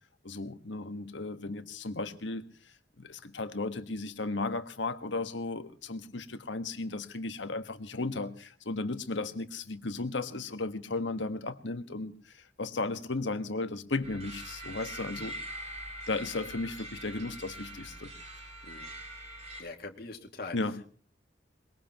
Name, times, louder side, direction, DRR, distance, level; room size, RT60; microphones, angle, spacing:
voice 1, 0.2-15.3 16.1-18.1 20.5-20.8, left 3 dB, 80° left, 1.5 m, -35 dB
sound 1, 14.0-19.6, right 1 dB, 35° right, 6.3 m, -43 dB
voice 2, 19.6-20.6, left 3 dB, 55° left, 2.3 m, -42 dB
22.5 x 21.5 x 3.0 m
head